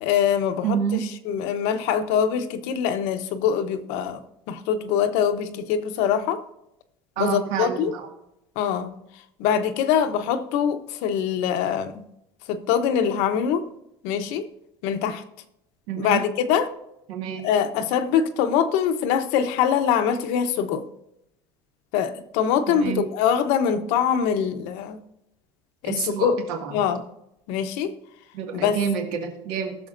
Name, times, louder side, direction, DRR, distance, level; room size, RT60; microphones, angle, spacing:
voice 1, 0.0-0.8 1.3-6.4 7.2-7.9 8.6-8.9 9.4-12.0 12.5-13.7 14.0-14.4 14.8-15.2 16.0-16.7 17.4-20.8 21.9-25.0 25.8-26.4 26.7-27.0 27.5-27.9 28.5-28.8, left 8 dB, 70° left, 8 dB, 0.9 m, -23 dB
voice 2, 0.6-1.0 7.2-8.1 15.9-16.2 17.1-17.5 22.7-23.1 25.8-26.8 28.3-29.8, right 8 dB, 85° right, 2 dB, 2.0 m, -28 dB
19.5 x 7.0 x 2.6 m, 0.82 s
cardioid pair, 170°, 12 cm